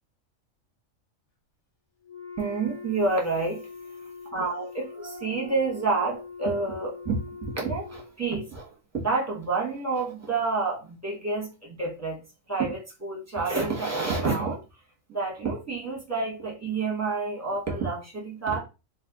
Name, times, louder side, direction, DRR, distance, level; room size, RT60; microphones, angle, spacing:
Wind instrument woodwind instrument, 2.0-8.2, left 5 dB, 45° left, 0.5 m, -42 dB
voice 1, 2.4-14.8 15.1-18.6, right 3 dB, 15° right, 1.0 m, -29 dB
2.6 x 2.5 x 3.5 m
omnidirectional pair, 1.4 m